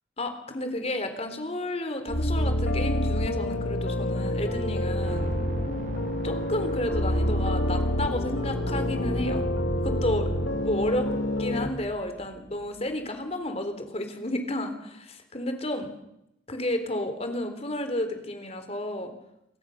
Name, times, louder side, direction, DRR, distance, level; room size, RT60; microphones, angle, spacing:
voice 1, 0.2-5.3 6.2-9.5 9.8-10.3 10.6-11.1 11.4-15.9 16.5-19.1, left 1 dB, 35° left, 7 dB, 3.7 m, -31 dB
sound 1, 2.1-11.7, left 1 dB, 80° left, 2.3 m, -27 dB
sound 2, 5.0-13.1, right 1 dB, 45° right, 2.9 m, -39 dB
28.5 x 24.5 x 6.6 m, 0.84 s
head